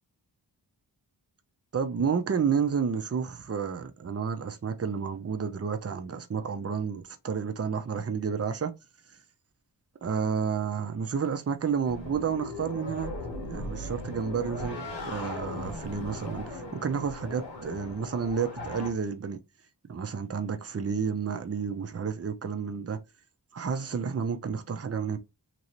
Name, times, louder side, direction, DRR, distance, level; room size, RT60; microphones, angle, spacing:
voice 1, 1.7-8.7 10.0-13.1 13.5-19.4 19.9-23.0 23.5-25.2, right 6 dB, 35° right, 0.6 m, -30 dB
sound 1, 11.8-18.9, left 1 dB, 85° left, 1.3 m, -38 dB
3.0 x 2.7 x 3.0 m
wide cardioid pair, 65°, 43 cm